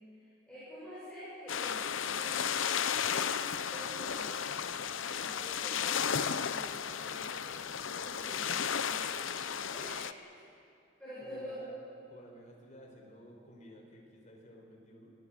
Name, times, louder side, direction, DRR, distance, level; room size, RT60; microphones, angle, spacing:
voice 1, 0.1-4.6 5.2-7.5 7.8-10.0 11.0-11.6, equal, 5° left, -11 dB, 8.0 m, -48 dB
sound 1, 1.5-10.1, left 7 dB, 80° left, 0.8 m, -34 dB
voice 2, 11.2-11.7 12.1-15.1, equal, 40° left, -1 dB, 4.6 m, -54 dB
26.0 x 17.5 x 7.8 m, 2.6 s
head